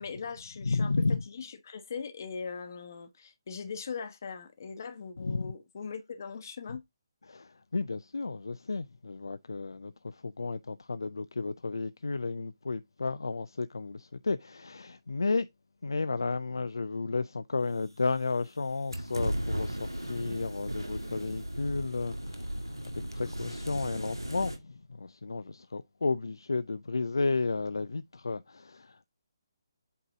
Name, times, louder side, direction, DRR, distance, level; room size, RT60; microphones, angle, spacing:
voice 1, 0.0-6.8, left 5 dB, 50° left, 1.2 m, -40 dB
voice 2, 0.6-1.2 5.2-5.5 7.3-9.9 10.2-15.5 15.8-22.1 23.1-24.5 25.0-29.1, left 3 dB, 70° left, 0.4 m, -32 dB
sound 1, 18.9-24.6, equal, 90° right, 1.6 m, -36 dB
8.3 x 3.9 x 3.6 m
figure-of-eight pair, 140°, 2 cm